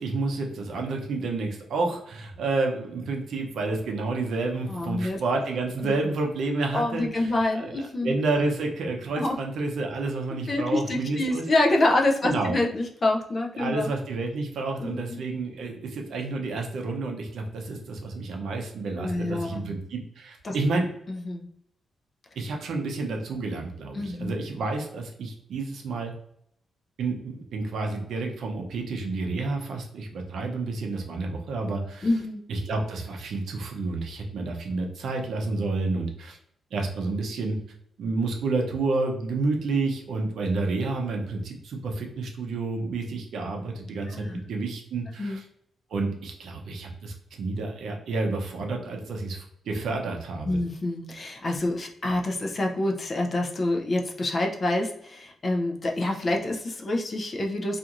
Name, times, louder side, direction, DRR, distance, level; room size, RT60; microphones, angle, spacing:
voice 1, 0.0-11.4 12.2-12.6 13.5-20.9 22.4-26.1 27.0-32.1 32.5-36.4 36.7-37.6 38.0-45.4 45.9-50.6, right 3 dB, 65° right, 2 dB, 0.5 m, -30 dB
voice 2, 4.7-5.2 5.8-5.9 6.7-8.2 9.2-9.4 10.5-13.9 14.8-15.2 19.0-19.7 20.4-20.5 21.1-21.5 23.9-24.3 32.0-32.4 44.1-44.4 45.2-45.4 50.5-57.8, left 2 dB, 30° left, 1 dB, 0.3 m, -27 dB
2.4 x 2.4 x 2.8 m, 0.73 s
wide cardioid pair, 170°, 0 cm